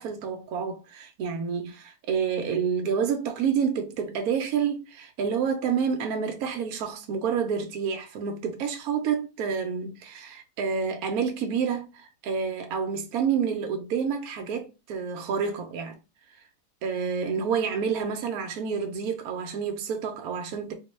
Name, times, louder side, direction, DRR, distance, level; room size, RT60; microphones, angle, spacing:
voice 1, 0.0-16.0 16.8-20.7, right 6 dB, 75° right, 1.0 m, -29 dB
4.0 x 2.1 x 3.1 m
omnidirectional pair, 1.6 m